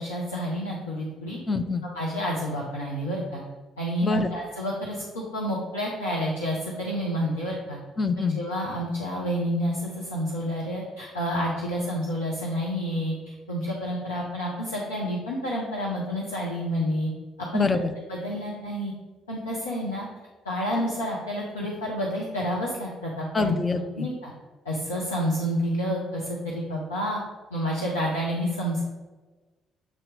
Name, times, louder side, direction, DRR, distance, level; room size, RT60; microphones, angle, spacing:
voice 1, 0.0-1.4 1.9-3.4 3.8-7.8 8.3-17.1 17.5-17.7 18.1-18.9 19.3-20.1 20.4-23.5 24.0-24.3 24.6-27.2 27.5-28.8, equal, 90° left, -5 dB, 0.8 m, -29 dB
voice 2, 1.5-1.9 4.0-4.3 8.0-8.4 17.5-17.9 23.3-24.1, left 3 dB, 35° left, 8 dB, 0.6 m, -25 dB
7.6 x 3.0 x 5.1 m, 1.2 s
hypercardioid pair, 45°, 0 cm